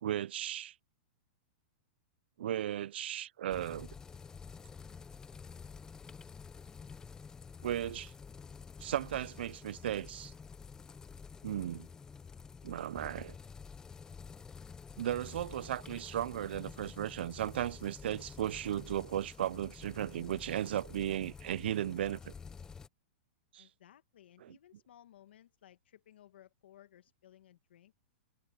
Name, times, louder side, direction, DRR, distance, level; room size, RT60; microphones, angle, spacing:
voice 1, 0.0-0.7 2.4-3.9 7.6-8.1 8.8-10.3 11.4-11.9 12.6-13.3 15.0-22.3 23.5-23.7 24.4-24.6, right 11 dB, 80° right, 0.3 m, -36 dB
sound 1, 3.5-22.9, left 5 dB, 10° left, 0.5 m, -50 dB
voice 2, 23.6-27.9, left 11 dB, 80° left, 1.4 m, -60 dB
supercardioid pair, 155°, 6 cm